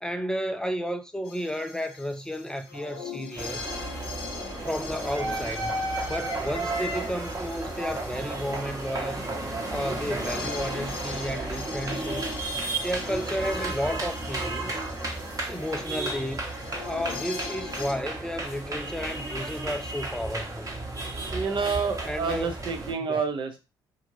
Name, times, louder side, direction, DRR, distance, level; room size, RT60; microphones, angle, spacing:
voice 1, 0.0-3.7 4.6-5.8 6.1-9.3 9.7-12.3 12.8-14.8 15.5-16.5 16.8-20.7 22.1-22.5 23.1-23.2, equal, 5° left, 0.4 m, -32 dB
sound 1, 1.2-17.9, left 5 dB, 85° left, 0.7 m, -41 dB
sound 2, 3.4-22.9, right 2 dB, 30° right, 1.1 m, -33 dB
voice 2, 21.3-23.6, right 5 dB, 50° right, 0.7 m, -28 dB
2.6 x 2.4 x 3.1 m
hypercardioid pair, 50°, 11 cm